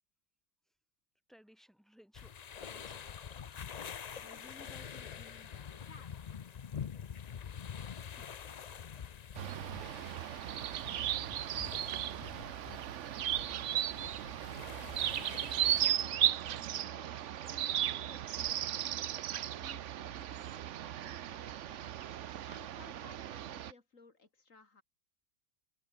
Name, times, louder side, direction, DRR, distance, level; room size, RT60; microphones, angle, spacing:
voice 1, 1.3-3.1 9.7-10.2, equal, ahead, 5.5 m, -63 dB
sound 1, 2.1-15.9, left 7 dB, 45° left, 0.5 m, -46 dB
voice 2, 4.2-6.1 15.6-21.9 22.4-24.8, left 3 dB, 80° left, 3.4 m, -58 dB
sound 2, 9.3-23.7, right 11 dB, 65° right, 1.0 m, -36 dB
omnidirectional pair, 1.4 m